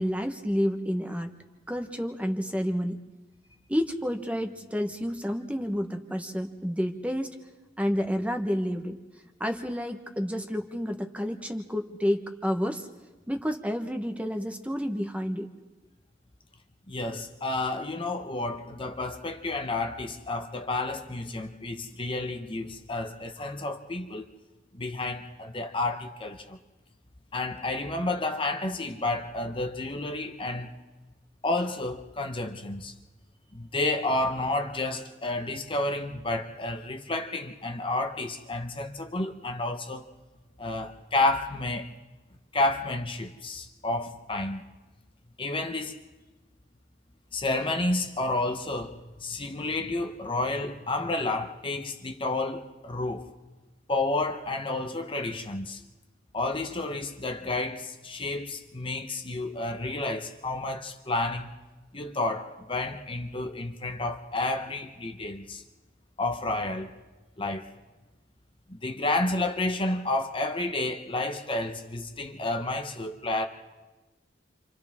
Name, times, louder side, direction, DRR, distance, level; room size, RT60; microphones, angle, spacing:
voice 1, 0.0-1.3 1.7-3.0 3.7-7.3 7.8-9.0 9.4-12.9 13.3-15.5, equal, 5° right, 1.1 m, -30 dB
voice 2, 16.9-24.3 24.7-26.6 27.3-30.7 31.4-32.9 33.5-40.0 40.6-41.9 42.5-44.6 45.4-46.0 47.3-53.3 53.9-55.8 56.3-61.5 61.9-65.6 66.2-66.9 67.4-67.7 68.7-73.5, left 2 dB, 30° left, 0.9 m, -30 dB
30.0 x 26.5 x 3.6 m
head